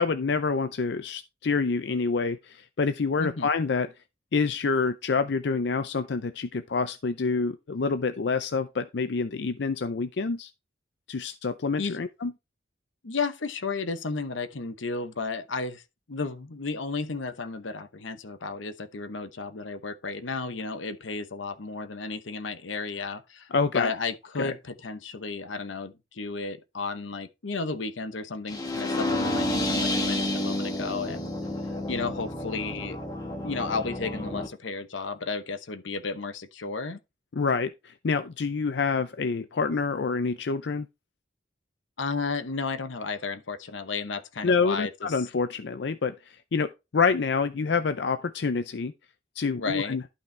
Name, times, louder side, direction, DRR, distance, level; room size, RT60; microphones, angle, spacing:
voice 1, 0.0-3.9 4.3-10.5 11.1-12.3 23.5-23.9 24.4-24.5 37.3-40.9 44.4-46.7 46.9-48.9 49.4-50.0, left 4 dB, 65° left, 0.5 m, -27 dB
voice 2, 3.2-3.5 11.8-12.0 13.0-15.8 16.1-23.5 23.7-31.3 31.7-33.0 33.4-37.0 42.0-45.2 49.6-50.0, left 4 dB, 85° left, 0.9 m, -33 dB
sound 1, 28.5-34.5, left 1 dB, 20° left, 1.3 m, -30 dB
12.0 x 5.4 x 3.3 m
head